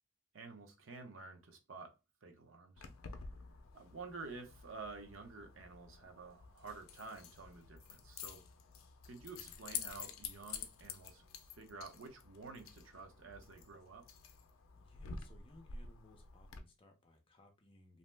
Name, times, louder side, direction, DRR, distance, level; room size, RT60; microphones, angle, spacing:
voice 1, 0.3-1.9 2.2-2.8 3.7-8.4 9.0-11.2 11.6-14.0, right 4 dB, 75° right, 0.7 m, -50 dB
Keys jangling, 2.8-16.6, left 6 dB, 85° left, 0.4 m, -50 dB
voice 2, 14.7-18.0, left 2 dB, 25° left, 0.6 m, -63 dB
2.7 x 2.0 x 3.2 m
head